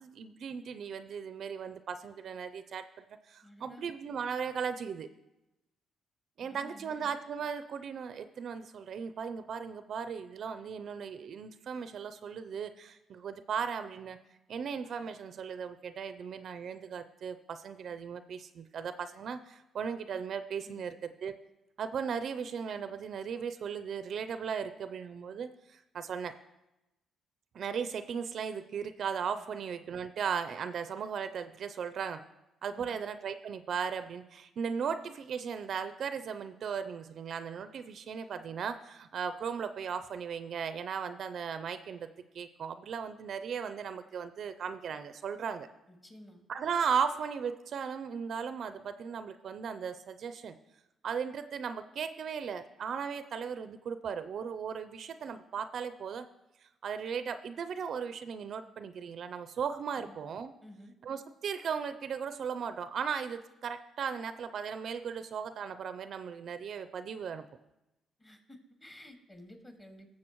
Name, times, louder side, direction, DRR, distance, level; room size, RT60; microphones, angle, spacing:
voice 1, 0.0-5.1 6.4-14.2 14.5-21.4 21.8-26.3 27.5-32.2 32.6-42.1 42.3-45.7 46.5-50.5 51.0-56.3 56.8-60.5 61.0-67.4, right 6 dB, 60° right, 11 dB, 0.5 m, -37 dB
voice 2, 3.4-3.9 6.4-7.1 20.7-20.9 29.5-29.6 32.7-33.0 45.9-46.4 60.0-60.2 60.6-60.9 68.2-70.1, left 1 dB, 20° left, 2 dB, 2.1 m, -53 dB
19.5 x 7.3 x 3.0 m, 0.96 s
cardioid pair, 90°, 0 cm